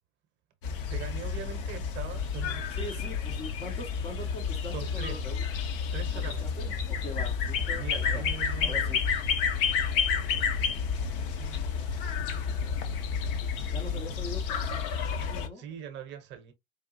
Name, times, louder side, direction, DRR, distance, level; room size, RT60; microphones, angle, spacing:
sound 1, 0.6-15.5, left 6 dB, 45° left, 0.9 m, -30 dB
voice 1, 0.9-2.7 4.7-5.3 5.9-6.7 7.5-9.0 10.1-11.7 15.5-16.5, right 8 dB, 30° right, 0.9 m, -43 dB
voice 2, 2.7-5.4 6.1-8.2 8.6-9.0 11.8-12.8 13.7-15.6, left 1 dB, 15° left, 0.7 m, -43 dB
4.8 x 2.6 x 2.6 m
figure-of-eight pair, 95°, 39 cm